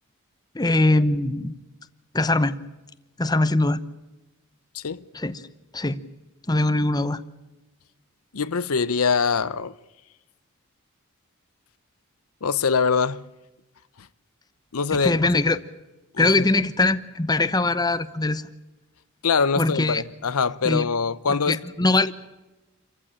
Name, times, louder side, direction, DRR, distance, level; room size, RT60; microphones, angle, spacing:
voice 1, 0.5-1.5 2.1-2.6 3.2-3.8 5.1-5.4 5.7-6.0 6.5-7.2 14.9-15.6 16.2-18.4 19.6-20.0 20.6-20.9 21.5-22.2, left 2 dB, 20° left, 0.9 m, -22 dB
voice 2, 8.3-9.7 12.4-13.3 14.7-15.3 16.1-16.5 19.2-21.6, left 5 dB, 80° left, 0.8 m, -23 dB
27.5 x 15.0 x 8.9 m
head